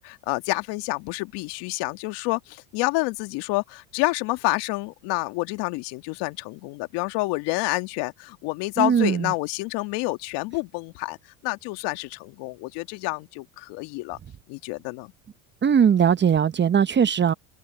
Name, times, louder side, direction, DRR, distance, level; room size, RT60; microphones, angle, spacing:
voice 1, 0.0-11.2 11.4-14.2 14.5-15.1, left 23 dB, 65° left, 1.9 m, -28 dB
voice 2, 8.8-9.3 15.6-17.3, right 7 dB, 25° right, 1.0 m, -19 dB
open air
supercardioid pair, 100°, 44 cm